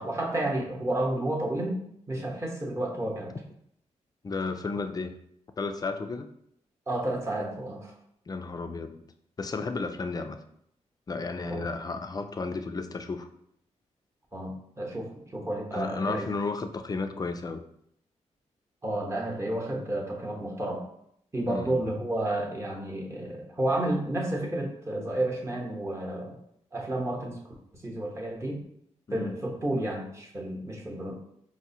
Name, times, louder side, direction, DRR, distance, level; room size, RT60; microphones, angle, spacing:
voice 1, 0.0-1.8 2.1-3.3 6.9-7.9 11.4-11.7 14.3-16.2 18.8-20.8 21.3-26.4 26.7-28.6 29.1-31.2, right 1 dB, 25° right, -1 dB, 0.9 m, -31 dB
voice 2, 4.2-5.1 5.6-6.3 8.3-9.0 9.4-10.4 11.1-13.3 15.7-17.6 21.5-21.8 29.1-29.4, left 3 dB, 30° left, 8 dB, 0.4 m, -33 dB
4.6 x 2.1 x 2.7 m, 0.73 s
cardioid pair, 60°, 12 cm